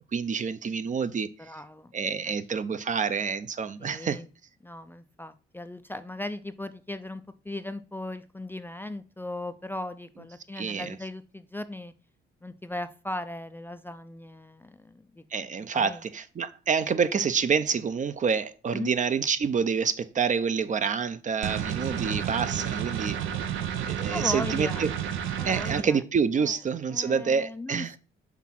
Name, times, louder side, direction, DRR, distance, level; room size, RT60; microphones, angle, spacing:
voice 1, 0.1-1.5 1.9-4.2 10.6-11.0 15.3-23.2 23.9-24.9 25.4-27.9, right 6 dB, 40° right, 0.6 m, -27 dB
voice 2, 1.4-1.9 2.3-2.4 3.8-4.3 4.6-11.9 12.4-15.2 15.7-16.0 18.7-18.9 24.1-24.8 25.4-26.0 26.4-26.5 26.9-28.0, left 1 dB, 10° left, 0.4 m, -38 dB
sound 1, 21.4-25.8, right 9 dB, 80° right, 0.7 m, -31 dB
6.0 x 3.6 x 5.9 m
cardioid pair, 90°, 20 cm